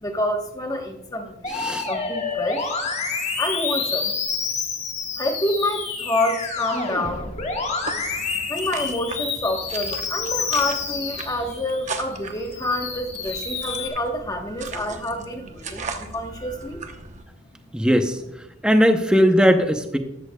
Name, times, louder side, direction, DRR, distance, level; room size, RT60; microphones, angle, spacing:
voice 1, 0.0-1.5 1.9-2.7 3.4-4.1 5.2-7.3 8.5-16.8, left 1 dB, 20° left, 3 dB, 1.2 m, -27 dB
Musical instrument, 1.4-11.9 12.3-13.9, left 5 dB, 35° left, 1.5 m, -29 dB
voice 2, 1.5-1.9 17.7-18.2 18.6-20.0, equal, 5° right, 6 dB, 0.7 m, -18 dB
sound 1, 7.8-17.2, right 4 dB, 35° right, 0.9 m, -37 dB
13.5 x 13.0 x 2.3 m, 0.86 s
head